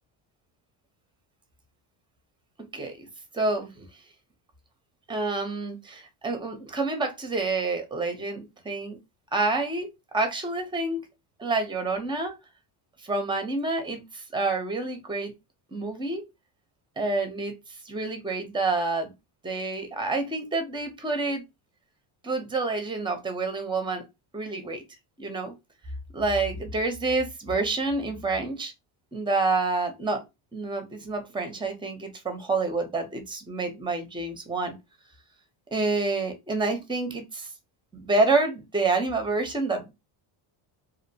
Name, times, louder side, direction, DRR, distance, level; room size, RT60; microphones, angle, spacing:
voice 1, 2.7-3.1 3.3-3.9 5.1-9.0 9.3-11.1 11.4-12.3 13.0-15.3 15.7-16.2 17.0-19.1 19.4-21.4 22.2-24.1 24.3-24.8 25.2-25.5 26.1-28.7 29.1-30.2 30.5-34.8 35.7-37.5 37.9-39.9, right 3 dB, 10° right, 0.6 m, -28 dB
2.7 x 2.1 x 2.7 m
cardioid pair, 105°, 48 cm